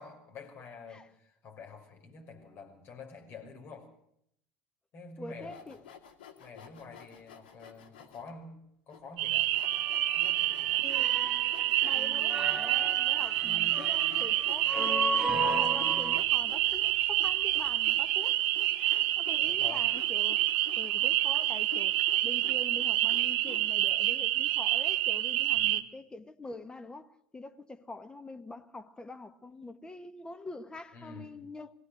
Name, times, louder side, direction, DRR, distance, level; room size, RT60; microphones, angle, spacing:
voice 1, 0.0-3.9 4.9-5.6 6.4-9.7 10.1-11.0 19.4-19.9 25.5-25.8 30.9-31.4, left 4 dB, 50° left, 6.0 m, -48 dB
voice 2, 5.2-5.8 10.8-11.3 11.8-18.5 18.7-20.4 20.8-31.7, left 2 dB, 15° left, 1.4 m, -45 dB
Sawing, 5.4-8.3 8.9-9.0 9.5-23.9, left 8 dB, 80° left, 2.3 m, -51 dB
sound 1, 9.2-25.8, right 15 dB, 70° right, 0.9 m, -28 dB
sound 2, 9.6-16.2, right 2 dB, 10° right, 1.5 m, -35 dB
21.5 x 16.5 x 8.0 m
hypercardioid pair, 80°, 5 cm